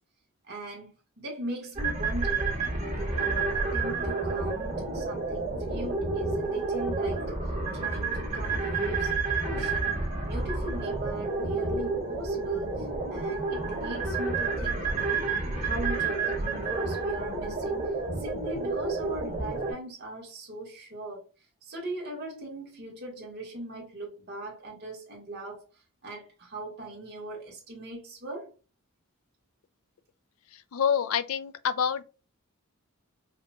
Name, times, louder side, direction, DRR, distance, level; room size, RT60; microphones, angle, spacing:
voice 1, 0.5-2.5 2.7-7.3 7.7-15.2 15.6-17.8 18.2-21.3 21.6-28.5, right 1 dB, 50° right, 1.6 m, -39 dB
sound 1, 1.8-19.7, right 3 dB, 30° right, 2.0 m, -30 dB
voice 2, 30.5-32.0, left 7 dB, 75° left, 0.4 m, -27 dB
5.0 x 2.8 x 2.3 m
head